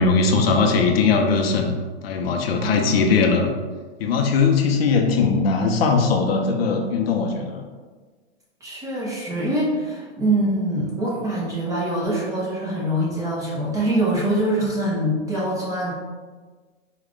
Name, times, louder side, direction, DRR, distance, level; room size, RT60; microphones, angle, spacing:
voice 1, 0.0-1.7 2.0-3.5 4.0-7.6, left 4 dB, 60° left, 3 dB, 0.7 m, -20 dB
voice 2, 2.6-3.2 8.6-15.9, right 1 dB, 10° right, -6 dB, 0.6 m, -24 dB
4.8 x 2.3 x 3.6 m, 1.4 s
hypercardioid pair, 145°, 35 cm